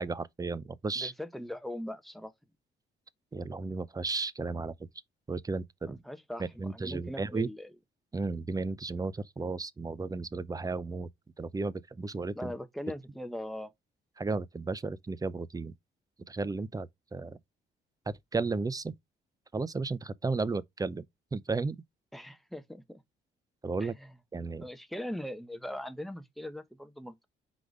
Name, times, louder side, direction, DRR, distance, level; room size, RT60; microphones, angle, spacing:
voice 1, 0.0-1.1 3.3-4.9 5.3-6.0 6.4-7.5 8.1-11.1 11.4-12.5 14.2-15.7 16.3-17.4 18.1-18.9 19.5-21.0 21.3-21.8 23.6-23.9 24.3-24.7, right 3 dB, 20° right, 0.6 m, -34 dB
voice 2, 0.9-2.3 5.8-7.7 12.3-13.7 22.1-23.0 23.8-24.1 24.6-27.3, left 1 dB, ahead, 1.0 m, -40 dB
4.9 x 4.1 x 4.7 m
cardioid pair, 90°, 20 cm